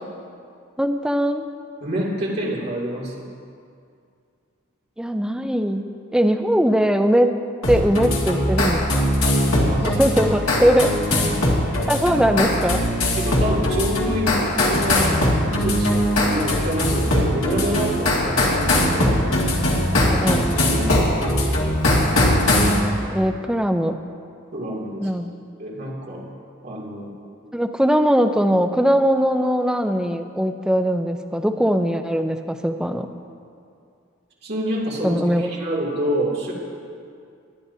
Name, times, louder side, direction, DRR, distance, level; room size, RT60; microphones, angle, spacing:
voice 1, 0.8-1.4 5.0-7.3 7.7-9.0 9.8-11.0 11.9-12.8 19.0-19.1 20.0-20.5 23.1-24.0 25.0-25.3 27.5-33.1 35.0-35.5, equal, 5° right, 6 dB, 0.4 m, -20 dB
voice 2, 1.8-3.3 9.4-10.0 11.3-11.8 12.1-12.2 13.2-19.2 20.1-20.2 20.6-21.7 24.5-25.1 25.6-26.2 26.6-27.1 34.4-36.5, equal, 50° right, -5 dB, 2.5 m, -27 dB
sound 1, 7.6-22.8, left 1 dB, 75° left, 1.9 m, -20 dB
21.0 x 10.5 x 2.7 m, 2.4 s
head